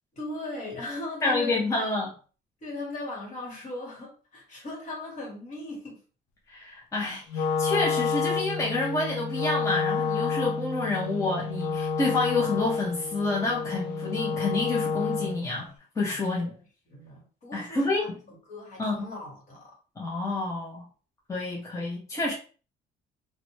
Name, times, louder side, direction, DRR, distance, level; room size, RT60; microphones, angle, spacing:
voice 1, 0.1-1.9 2.6-6.0 16.4-19.8, left 2 dB, 45° left, 1.4 m, -38 dB
voice 2, 1.2-2.1 6.5-15.7 16.0-16.5 17.5-18.1 18.8-19.0 20.0-20.9 21.3-22.3, left 2 dB, 20° left, 0.7 m, -28 dB
Wind instrument woodwind instrument, 7.3-15.5, left 5 dB, 85° left, 0.5 m, -29 dB
2.5 x 2.1 x 3.0 m
cardioid pair, 110°, 17 cm